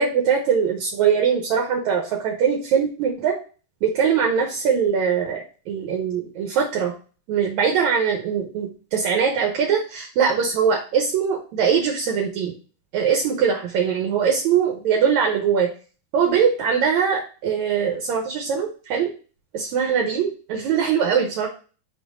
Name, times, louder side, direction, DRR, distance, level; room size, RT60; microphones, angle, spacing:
voice 1, 0.0-3.4 3.8-6.9 7.3-12.5 12.9-15.7 16.1-19.1 19.5-21.5, right 7 dB, 70° right, 1 dB, 2.1 m, -21 dB
5.5 x 4.2 x 4.9 m, 0.37 s
omnidirectional pair, 3.6 m